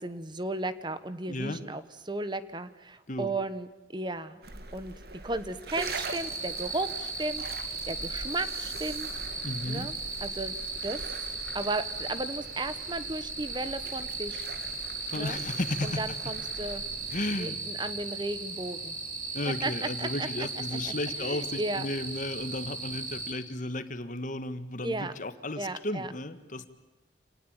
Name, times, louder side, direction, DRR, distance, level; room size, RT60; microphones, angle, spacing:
voice 1, 0.0-4.4 4.7-4.9 5.2-9.1 9.6-9.9 10.2-10.6 10.8-11.0 11.5-14.5 15.1-15.4 15.8-16.8 17.4-18.9 19.6-19.7 20.0-20.3 20.8-21.9 24.8-25.1 25.6-26.1, right 2 dB, 25° right, 12 dB, 1.2 m, -35 dB
voice 2, 1.3-1.6 3.1-3.3 9.4-9.9 15.1-16.2 17.1-17.6 19.3-26.7, left 1 dB, 45° left, 11 dB, 1.7 m, -34 dB
sound 1, 4.4-17.2, right 3 dB, 60° right, 2.4 m, -43 dB
sound 2, 5.8-23.3, right 3 dB, 45° right, 5.2 m, -37 dB
27.5 x 19.0 x 8.9 m, 1.1 s
head